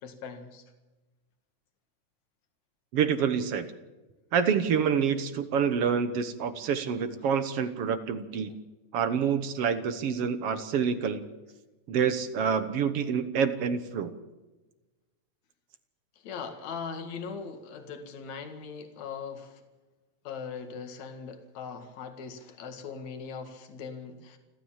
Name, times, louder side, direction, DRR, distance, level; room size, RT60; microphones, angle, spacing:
voice 1, 0.0-0.6 16.2-19.6 20.2-24.4, left 5 dB, 70° left, 6 dB, 3.2 m, -40 dB
voice 2, 2.9-3.7 4.3-8.5 8.9-11.2 11.9-14.1, right 7 dB, 60° right, 11 dB, 2.0 m, -27 dB
29.0 x 13.0 x 7.4 m, 1.2 s
omnidirectional pair, 3.3 m